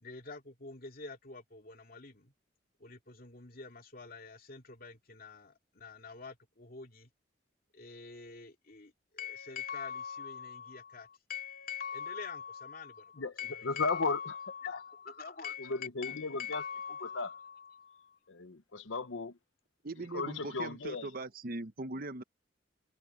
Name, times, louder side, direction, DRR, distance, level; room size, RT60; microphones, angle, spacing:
voice 1, 0.0-2.3 2.8-7.1 7.7-18.2, left 6 dB, 50° left, 2.6 m, -44 dB
voice 2, 13.6-14.3 14.7-14.8 15.6-16.6 17.1-17.3 18.3-19.4 20.1-21.1, left 4 dB, 85° left, 0.9 m, -35 dB
voice 3, 19.8-22.2, right 2 dB, 50° right, 0.9 m, -40 dB
head